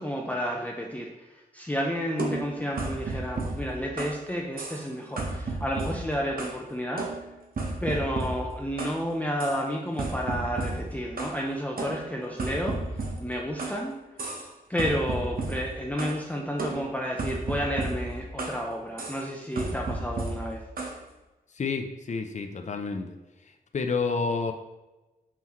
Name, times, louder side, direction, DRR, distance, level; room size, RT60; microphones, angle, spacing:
voice 1, 0.0-7.2 7.8-14.4 14.7-20.6, equal, 10° left, -1 dB, 0.7 m, -31 dB
sound 1, 2.2-4.2 4.6-4.9 5.2-6.6 7.0-9.0 9.4-9.6 10.0-11.4 11.8-13.8 14.2-14.5 14.8-16.2 16.6-18.6 19.0-19.2 19.6-21.0, right 2 dB, 70° right, 1.0 m, -33 dB
voice 2, 21.5-23.2 23.7-24.5, left 4 dB, 50° left, 5 dB, 0.6 m, -29 dB
5.8 x 5.7 x 3.0 m, 1.1 s
wide cardioid pair, 105°, 16 cm